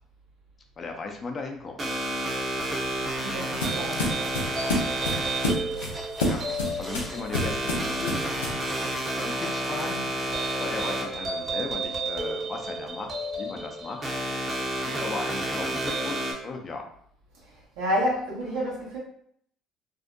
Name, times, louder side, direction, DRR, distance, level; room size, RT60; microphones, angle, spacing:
voice 1, 0.8-1.8 6.2-6.4 6.8-8.2 9.2-10.1 10.6-14.0 14.8-16.9, left 3 dB, 40° left, 3 dB, 0.5 m, -36 dB
sound 1, 1.8-16.3, right 1 dB, 40° right, 0.8 m, -30 dB
sound 2, 2.6-8.7, left 1 dB, 90° left, 0.5 m, -30 dB
voice 2, 3.2-4.1 17.8-19.0, equal, 75° right, -5 dB, 0.9 m, -29 dB
sound 3, 3.9-10.6 10.8-10.9, equal, 5° right, 0.6 m, -43 dB
2.6 x 2.1 x 2.5 m, 0.64 s
hypercardioid pair, 60°, 0 cm